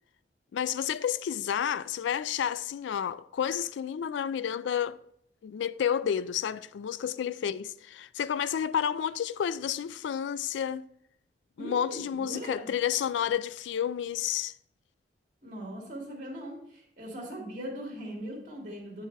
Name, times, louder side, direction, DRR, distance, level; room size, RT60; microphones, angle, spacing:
voice 1, 0.5-5.0 5.4-10.8 11.6-14.5, left 8 dB, 80° left, 0.3 m, -30 dB
voice 2, 11.6-12.7 15.4-19.1, equal, 45° right, 2.5 m, -40 dB
9.2 x 5.5 x 3.3 m
head